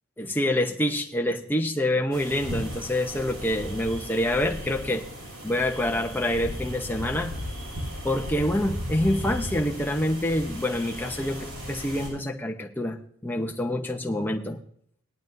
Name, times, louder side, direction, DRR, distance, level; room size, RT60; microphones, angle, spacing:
voice 1, 0.2-5.0 5.4-7.3 8.0-13.0 13.2-14.6, left 1 dB, 10° left, 3 dB, 0.9 m, -26 dB
sound 1, 2.1-12.1, equal, 75° right, 6.4 m, -36 dB
18.5 x 11.5 x 2.7 m, 0.63 s
head